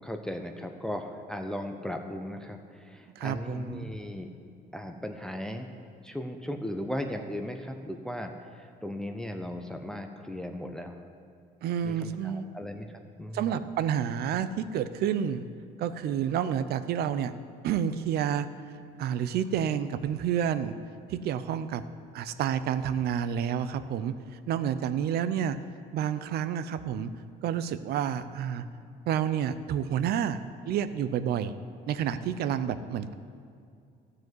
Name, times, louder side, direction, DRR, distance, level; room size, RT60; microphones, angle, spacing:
voice 1, 0.0-4.3 4.7-5.7 6.0-11.0 11.8-13.5, left 1 dB, 5° left, 4 dB, 0.6 m, -37 dB
voice 2, 3.2-3.9 11.6-12.5 13.3-15.5 15.8-17.3 17.6-18.5 19.0-20.8 21.1-21.8 22.1-24.1 24.5-25.6 25.9-27.1 27.4-28.6 29.1-31.5 31.9-33.1, right 9 dB, 70° right, 12 dB, 0.6 m, -29 dB
13.5 x 4.9 x 7.8 m, 2.4 s
cardioid pair, 110°, 17 cm